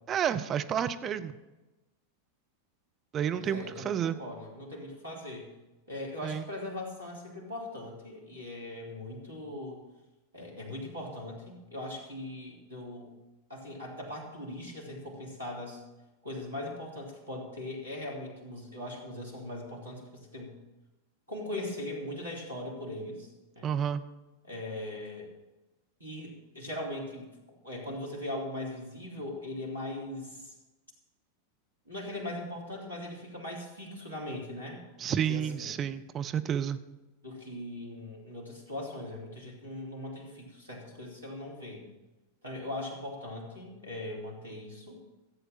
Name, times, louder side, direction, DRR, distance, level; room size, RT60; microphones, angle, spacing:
voice 1, 0.1-1.3 3.1-4.2 6.2-6.4 23.6-24.0 35.0-36.8, right 9 dB, 25° right, 9 dB, 0.7 m, -30 dB
voice 2, 3.3-5.5 5.9-9.8 10.3-13.1 13.5-15.8 16.2-20.5 21.3-23.3 23.6-23.7 24.4-25.3 26.0-27.3 27.6-30.5 31.9-34.8 35.1-35.8 37.2-41.8 42.4-45.0, left 1 dB, 90° right, -3 dB, 3.4 m, -40 dB
15.0 x 8.2 x 5.8 m, 1.1 s
figure-of-eight pair, 90°, 0 cm